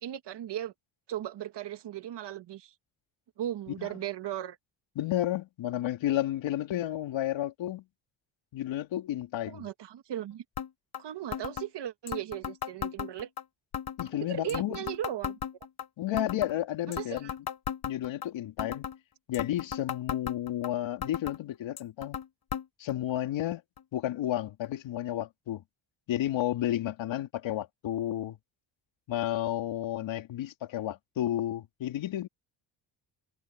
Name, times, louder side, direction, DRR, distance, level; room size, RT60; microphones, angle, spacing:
voice 1, 0.0-0.7 1.1-2.7 3.4-4.6 9.5-10.4 11.0-13.3 14.2-15.4 16.9-17.3, right 11 dB, 60° right, 1.8 m, -37 dB
voice 2, 5.0-7.8 8.5-9.7 14.0-14.8 16.0-17.3 17.8-18.9 19.3-22.2 22.8-23.6 23.9-25.6 26.1-28.4 29.1-32.3, left 13 dB, 75° left, 3.2 m, -32 dB
sound 1, 10.6-10.7 10.9-11.0 11.3-11.7 12.1-13.4 13.7-14.1 14.5-15.9 16.2-16.5 16.9-18.3 18.6-19.0 19.3-20.7 21.0-21.4 21.8-22.3 22.5-22.6 22.9-23.0 23.8-23.9 24.6-24.7, left 9 dB, 55° left, 5.2 m, -36 dB
cardioid pair, 100°, 46 cm